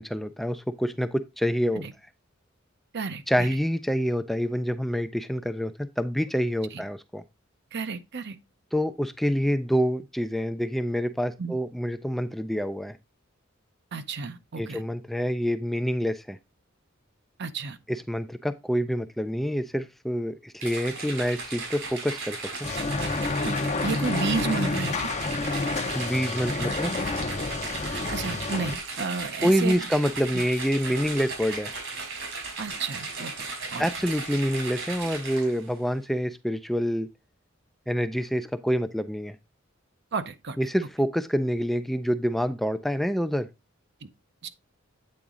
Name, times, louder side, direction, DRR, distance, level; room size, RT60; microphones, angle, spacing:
voice 1, 0.0-1.8 3.3-7.2 8.7-13.0 14.6-16.4 17.9-22.4 25.9-26.9 29.4-31.7 33.8-37.1 37.9-39.4 40.6-43.5, equal, ahead, 0.3 m, -27 dB
voice 2, 2.9-3.5 6.7-6.8 7.7-8.4 11.4-11.6 13.9-14.8 17.4-17.8 23.4-23.6 23.8-25.1 27.9-29.8 30.3-30.4 30.9-31.0 32.6-33.9 40.1-40.6 44.0-44.1 44.4-44.5, right 4 dB, 55° right, 0.7 m, -32 dB
sound 1, 20.6-35.7, right 3 dB, 75° right, 3.2 m, -36 dB
sound 2, 22.6-28.8, left 3 dB, 35° left, 0.6 m, -29 dB
8.6 x 4.0 x 3.6 m
head